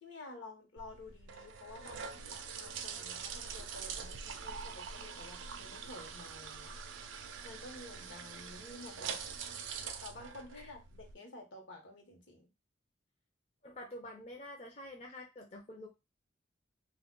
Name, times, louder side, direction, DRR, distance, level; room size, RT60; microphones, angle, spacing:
voice 1, 0.0-6.8 7.4-9.3 10.0-12.5, left 2 dB, 70° left, 3 dB, 0.9 m, -51 dB
sound 1, 0.8-11.1, right 6 dB, 90° right, 0.4 m, -44 dB
voice 2, 13.6-15.9, left 1 dB, 35° left, 1 dB, 0.5 m, -48 dB
2.3 x 2.2 x 3.7 m, 0.24 s
head